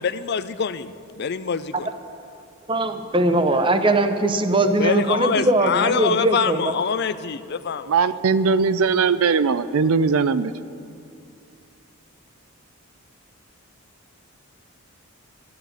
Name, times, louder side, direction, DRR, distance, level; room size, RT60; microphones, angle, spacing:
voice 1, 0.0-1.7 4.8-7.9, left 6 dB, 50° left, 14 dB, 0.4 m, -24 dB
voice 2, 2.7-6.7, right 2 dB, 20° right, 8 dB, 0.7 m, -20 dB
voice 3, 7.9-10.5, right 5 dB, 75° right, 14 dB, 0.5 m, -20 dB
12.5 x 9.4 x 8.9 m, 2.5 s
head